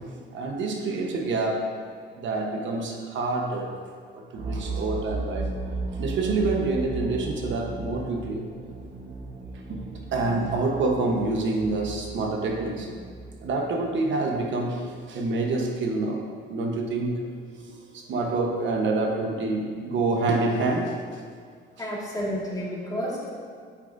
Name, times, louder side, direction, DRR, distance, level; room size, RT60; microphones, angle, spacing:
voice 1, 0.3-1.7 2.2-3.7 4.1-5.5 6.0-8.5 9.7-9.9 10.1-12.9 13.4-16.2 16.5-17.3 17.7-20.9, right 3 dB, 70° right, 2 dB, 1.1 m, -27 dB
sound 1, 4.4-14.2, right 2 dB, 45° right, 1.0 m, -35 dB
voice 2, 21.8-23.3, equal, 20° left, -4 dB, 1.9 m, -30 dB
9.0 x 7.3 x 2.7 m, 2.1 s
cardioid pair, 90°, 20 cm